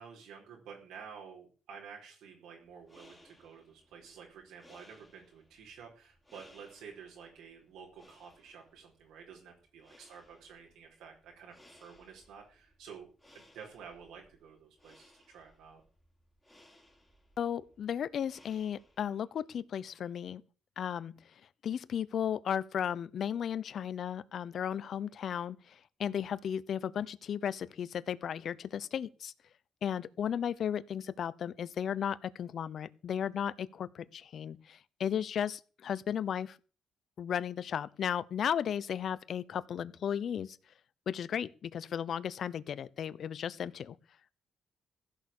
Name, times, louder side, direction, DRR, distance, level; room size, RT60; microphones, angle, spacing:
voice 1, 0.0-15.8, right 6 dB, 85° right, 4.7 m, -51 dB
sound 1, 2.7-19.3, left 1 dB, 5° left, 5.2 m, -63 dB
voice 2, 17.4-20.4 20.8-21.1 21.6-29.3 29.8-36.6 37.2-40.6 41.1-44.0, left 8 dB, 60° left, 0.8 m, -35 dB
15.5 x 6.6 x 8.6 m
cardioid pair, 90°, 0 cm